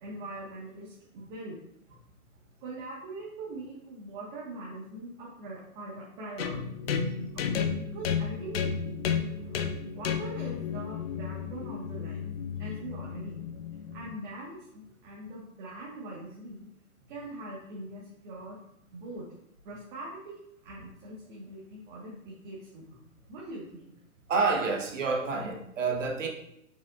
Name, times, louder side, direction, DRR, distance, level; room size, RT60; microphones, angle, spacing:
voice 1, 0.0-1.6 2.6-6.7 7.3-9.1 9.4-12.2 12.6-13.6 13.9-16.7 17.1-18.6 18.9-19.3 19.6-23.9 26.2-26.3, right 2 dB, 35° right, -5 dB, 1.7 m, -42 dB
sound 1, 6.4-14.2, left 6 dB, 45° left, 0.6 m, -33 dB
voice 2, 24.3-26.3, right 4 dB, 55° right, 2 dB, 1.2 m, -28 dB
7.5 x 5.6 x 2.5 m, 0.76 s
hypercardioid pair, 135°, 44 cm